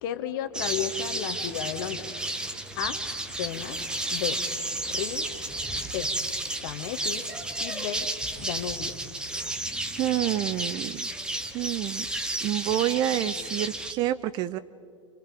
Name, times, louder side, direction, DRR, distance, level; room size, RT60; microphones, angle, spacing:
voice 1, 0.0-2.1 2.8-3.0 3.4-3.8 4.1-4.4 4.9-5.3 5.9-6.1 6.6-7.3 7.6-8.1 8.4-9.0, left 10 dB, 40° left, 10 dB, 1.7 m, -33 dB
sound 1, 0.5-13.9, right 1 dB, 5° right, 1.4 m, -32 dB
voice 2, 10.0-11.1 11.5-12.1 12.4-14.6, right 13 dB, 25° right, 15 dB, 0.6 m, -28 dB
29.5 x 29.0 x 5.2 m, 2.3 s
figure-of-eight pair, 105°, 17 cm